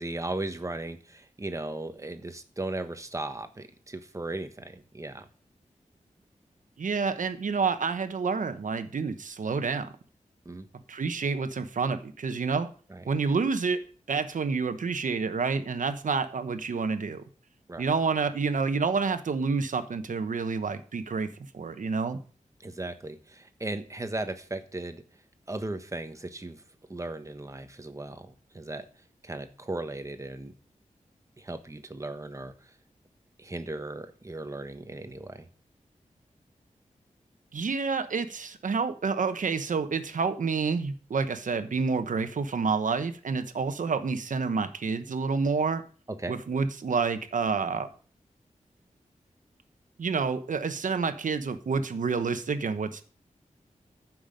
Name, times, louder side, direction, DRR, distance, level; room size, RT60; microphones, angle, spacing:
voice 1, 0.0-5.3 10.4-10.7 12.9-13.0 17.7-17.8 22.6-25.0 25.5-26.6 26.9-28.8 29.2-30.5 31.4-32.5 33.4-35.5 46.2-46.3, right 2 dB, 25° right, 8 dB, 1.3 m, -36 dB
voice 2, 6.8-9.9 10.9-12.7 13.1-13.8 14.1-17.2 17.8-21.3 21.5-22.2 37.5-45.8 46.3-47.9 50.0-53.0, right 5 dB, 75° right, 10 dB, 1.1 m, -28 dB
14.5 x 6.1 x 5.3 m, 0.41 s
wide cardioid pair, 110°, 13 cm